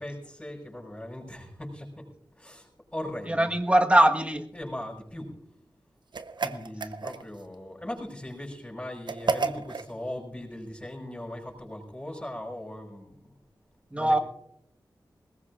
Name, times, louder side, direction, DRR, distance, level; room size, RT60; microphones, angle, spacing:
voice 1, 0.0-2.1 2.4-3.8 4.5-5.3 6.4-13.2 13.9-14.2, left 1 dB, 20° left, -8 dB, 6.3 m, -39 dB
voice 2, 3.2-4.5 13.9-14.2, right 1 dB, 15° right, 4 dB, 1.4 m, -21 dB
sound 1, 6.1-7.5 9.1-9.9, right 4 dB, 70° right, 0.8 m, -31 dB
21.5 x 19.5 x 2.5 m, 0.77 s
wide cardioid pair, 65°, 8 cm